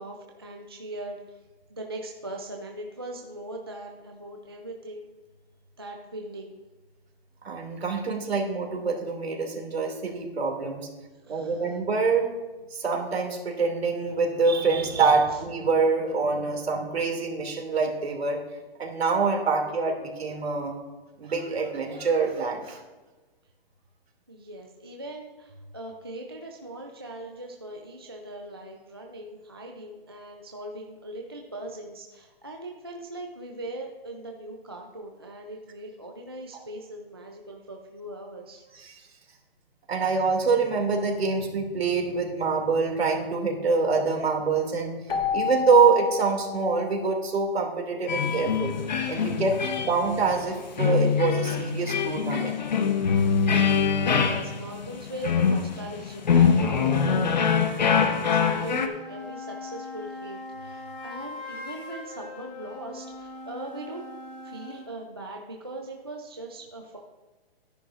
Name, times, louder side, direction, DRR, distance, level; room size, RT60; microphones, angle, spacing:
voice 1, 0.0-1.4 1.7-5.1 5.8-6.6 11.2-11.8 15.3-15.4 24.3-38.6 54.1-64.1 64.4-67.0, right 1 dB, 25° right, 1 dB, 0.4 m, -40 dB
voice 2, 7.4-10.9 11.3-12.3 12.7-18.4 18.8-20.8 21.2-22.8 38.7-38.9 39.9-45.0 45.3-48.7 49.1-49.6 49.8-52.6, right 4 dB, 85° right, 2 dB, 2.5 m, -25 dB
Keyboard (musical), 45.1-47.7, left 7 dB, 70° left, 1.9 m, -31 dB
sound 1, 48.1-58.9, left 6 dB, 45° left, 0.8 m, -24 dB
sound 2, 58.7-64.9, left 2 dB, 30° left, 2.7 m, -41 dB
13.0 x 10.0 x 2.5 m, 1.2 s
hypercardioid pair, 180°, 30 cm